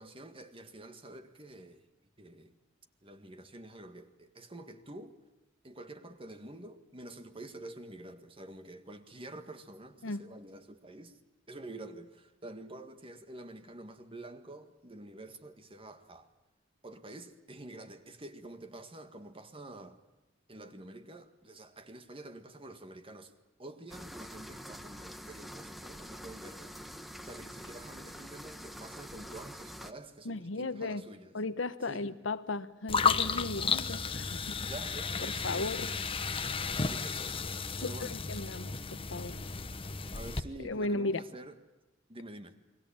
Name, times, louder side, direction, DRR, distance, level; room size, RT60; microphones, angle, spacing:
voice 1, 0.0-1.9 2.2-2.6 3.0-5.2 5.6-11.2 11.5-16.3 16.8-20.0 20.5-23.3 23.6-26.7 27.2-31.3 31.9-32.1 34.6-35.9 36.9-37.5 37.8-38.2 40.1-41.6 42.1-42.6, right 1 dB, 30° right, 1.8 m, -48 dB
sound 1, 23.9-29.9, equal, ahead, 1.1 m, -46 dB
voice 2, 30.2-31.0 31.3-34.4 35.2-35.9 37.8-39.4 40.6-41.2, left 2 dB, 80° left, 1.1 m, -36 dB
sound 2, 32.9-40.4, left 5 dB, 30° left, 1.1 m, -33 dB
29.0 x 22.0 x 8.8 m
head